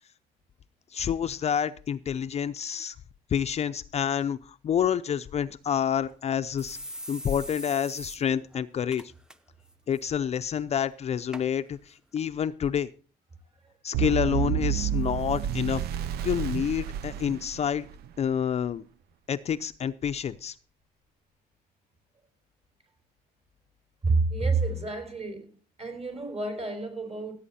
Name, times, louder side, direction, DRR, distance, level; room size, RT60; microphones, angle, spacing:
voice 1, 0.9-3.0 3.3-6.8 7.1-9.0 9.9-12.9 13.8-15.8 16.2-17.9 18.2-18.8 19.3-20.5, left 8 dB, 40° left, 0.5 m, -28 dB
sound 1, 5.6-5.7 6.1-6.2 6.6-8.2 8.5-8.6 8.9-9.4 9.7-10.0 10.7-10.8 11.3-11.5 12.2-12.3, equal, 5° right, 0.8 m, -41 dB
sound 2, 13.9-18.1, right 11 dB, 70° right, 0.5 m, -30 dB
voice 2, 24.0-25.5 25.8-27.3, right 3 dB, 40° right, 4.6 m, -29 dB
16.5 x 8.3 x 4.2 m
cardioid pair, 110°, 17 cm